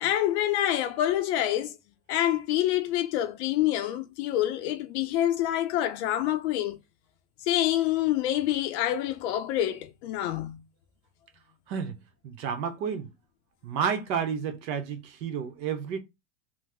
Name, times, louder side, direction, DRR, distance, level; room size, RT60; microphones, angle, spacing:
voice 1, 0.0-1.7 2.1-6.8 7.4-10.6, left 12 dB, 45° left, 0.4 m, -27 dB
voice 2, 11.7-12.0 12.2-13.1 13.6-16.0, right 7 dB, 80° right, 0.9 m, -31 dB
3.1 x 2.0 x 3.3 m
supercardioid pair, 145°, 50 cm